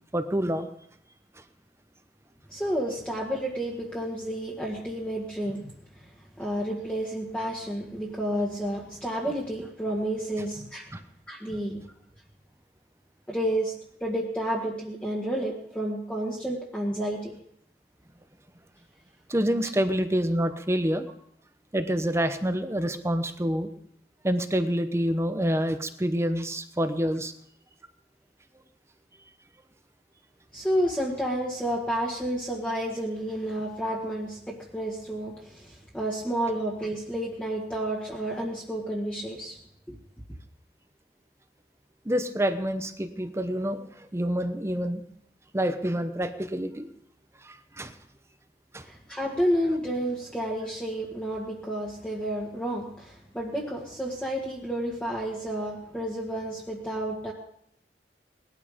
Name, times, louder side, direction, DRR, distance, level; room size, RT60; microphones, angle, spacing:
voice 1, 0.1-0.7 10.9-11.0 19.3-21.0 21.7-23.7 24.2-27.3 42.1-45.0 45.5-46.9 47.4-47.9 48.7-48.8, equal, 15° right, 9 dB, 0.9 m, -27 dB
voice 2, 2.5-5.7 6.4-10.9 11.3-11.8 13.3-13.7 14.0-17.3 30.5-39.6 39.9-40.0 48.9-57.3, right 1 dB, 5° left, -3 dB, 1.8 m, -30 dB
19.0 x 12.5 x 5.2 m, 0.70 s
head